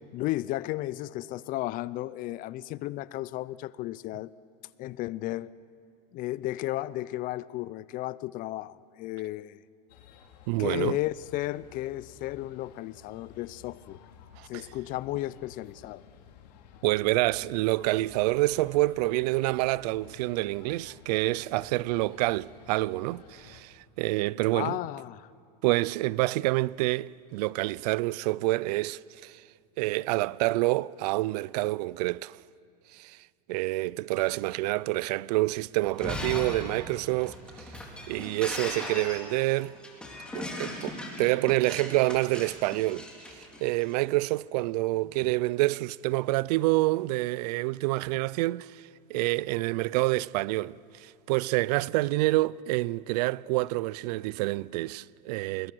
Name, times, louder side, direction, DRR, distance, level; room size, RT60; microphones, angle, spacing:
voice 1, 0.1-4.3 4.8-5.5 6.1-9.6 10.6-14.0 14.5-16.0 24.5-25.3, left 16 dB, 40° left, 0.5 m, -34 dB
sound 1, 9.9-23.6, left 7 dB, 80° left, 2.4 m, -53 dB
voice 2, 10.5-11.0 14.4-14.7 16.8-24.8 25.6-29.4 29.8-32.4 32.9-33.2 33.5-37.7 38.1-39.7 40.3-43.1 43.6-55.7, right 19 dB, 70° right, 0.5 m, -27 dB
Shatter, 35.9-43.9, left 1 dB, 5° left, 3.7 m, -38 dB
30.0 x 21.0 x 6.3 m
supercardioid pair, 135°, 21 cm